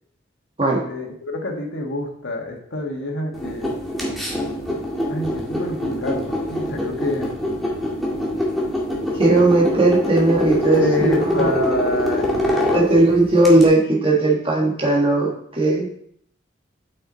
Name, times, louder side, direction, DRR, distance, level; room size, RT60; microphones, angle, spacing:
voice 1, 0.9-3.7 5.1-7.3 10.7-13.0, left 1 dB, 85° left, 1 dB, 1.7 m, -27 dB
sound 1, 3.3-13.7, left 1 dB, ahead, 1.9 m, -24 dB
voice 2, 9.1-11.5 12.7-15.9, right 2 dB, 30° right, -2 dB, 1.6 m, -17 dB
7.9 x 6.2 x 4.0 m, 0.66 s
head